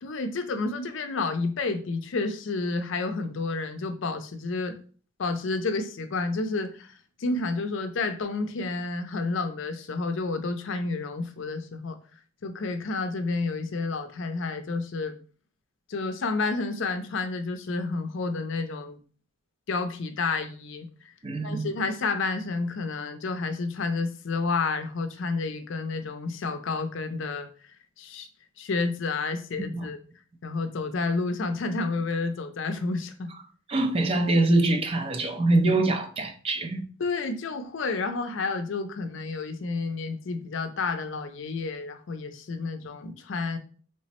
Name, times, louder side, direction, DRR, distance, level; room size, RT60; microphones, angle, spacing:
voice 1, 0.0-4.8 5.2-12.0 12.4-15.2 15.9-19.0 19.7-20.9 21.4-27.5 28.0-28.3 28.6-30.0 30.4-33.3 37.0-43.6, left 3 dB, 70° left, 0.4 m, -30 dB
voice 2, 21.2-21.7 29.6-29.9 33.7-36.8, right 2 dB, 30° right, 0.4 m, -24 dB
3.3 x 2.0 x 4.2 m
head